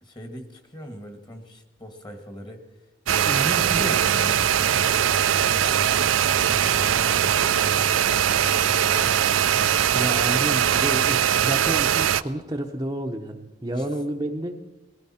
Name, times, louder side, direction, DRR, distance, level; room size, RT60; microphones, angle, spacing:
voice 1, 0.0-9.2 13.6-13.9, equal, 20° left, 6 dB, 1.6 m, -41 dB
sound 1, 3.1-12.2, right 9 dB, 85° right, 0.4 m, -21 dB
voice 2, 3.3-4.0 9.9-14.6, right 1 dB, 20° right, 2 dB, 0.7 m, -30 dB
Truck, 4.1-9.7, equal, 75° left, 1.2 m, -40 dB
sound 2, 11.5-12.9, left 1 dB, 55° left, 6.3 m, -53 dB
21.0 x 15.5 x 4.3 m, 1.1 s
head